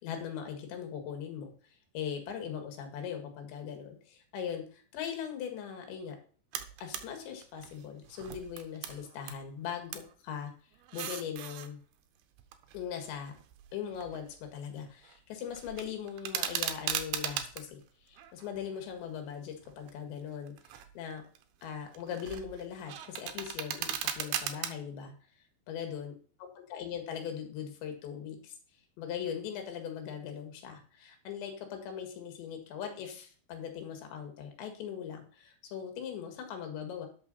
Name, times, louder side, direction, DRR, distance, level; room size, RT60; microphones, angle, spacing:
voice 1, 0.0-1.5 1.9-6.2 6.8-10.5 10.9-11.8 12.7-13.3 13.7-21.2 21.6-25.1 25.7-26.1 26.4-28.6 29.0-37.1, left 8 dB, 75° left, 5 dB, 4.0 m, -40 dB
sound 1, 6.5-7.1 7.4-9.4 9.7-10.1 10.7-11.7 12.4-14.5 14.8-15.2 15.5-17.6 18.2-19.1 19.6-19.9 20.5-21.0 21.4-24.7, right 10 dB, 75° right, 2.5 m, -38 dB
11.5 x 6.5 x 4.1 m, 0.43 s
omnidirectional pair, 5.2 m